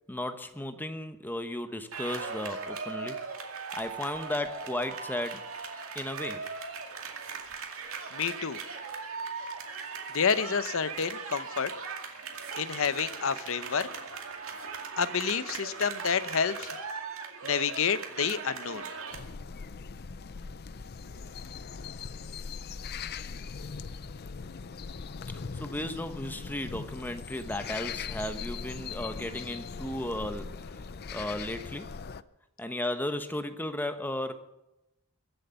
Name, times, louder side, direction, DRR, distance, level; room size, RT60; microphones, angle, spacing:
voice 1, 0.1-5.4 5.9-6.4 25.3-31.9 32.6-34.3, left 1 dB, 10° left, 8 dB, 1.1 m, -35 dB
sound 1, 1.9-19.2, right 5 dB, 65° right, 2.2 m, -39 dB
voice 2, 8.1-8.6 10.1-11.7 12.6-13.9 15.0-16.7 17.4-18.9, left 6 dB, 65° left, 13 dB, 0.8 m, -29 dB
sound 2, 19.1-32.2, left 5 dB, 45° left, 0.5 m, -40 dB
22.5 x 8.0 x 7.0 m, 0.92 s
head